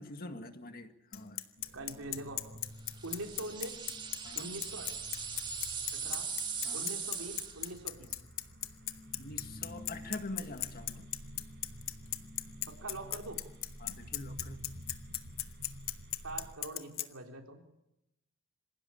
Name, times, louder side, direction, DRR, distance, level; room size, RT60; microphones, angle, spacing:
voice 1, 0.0-1.5 4.2-4.5 6.6-7.0 9.1-11.1 13.8-14.6, left 2 dB, 45° left, 7 dB, 1.9 m, -45 dB
Bicycle, 1.1-17.1, left 14 dB, 75° left, 1.3 m, -36 dB
sound 1, 1.6-16.5, equal, 55° right, 4.2 m, -50 dB
voice 2, 1.7-2.6 3.0-3.9 4.4-4.9 5.9-6.3 6.7-8.2 12.7-13.4 16.2-17.7, right 2 dB, 80° right, 2 dB, 4.0 m, -43 dB
sound 2, 2.9-7.8, right 6 dB, 20° right, 1.8 m, -40 dB
26.0 x 16.5 x 8.7 m, 0.88 s
head